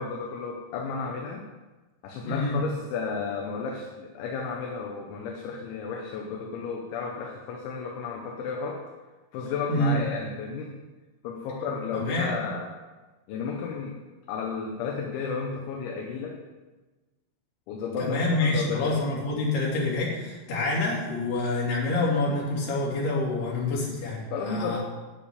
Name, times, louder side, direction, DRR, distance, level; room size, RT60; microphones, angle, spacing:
voice 1, 0.0-1.4 2.0-8.8 9.3-10.8 11.2-12.7 13.3-13.9 14.3-16.4 17.7-19.0 24.3-24.8, left 5 dB, 75° left, 0 dB, 3.2 m, -33 dB
voice 2, 2.3-2.6 9.7-10.0 11.9-12.4 18.0-24.8, left 2 dB, 55° left, -5 dB, 4.8 m, -27 dB
10.0 x 6.8 x 8.7 m, 1.2 s
omnidirectional pair, 5.8 m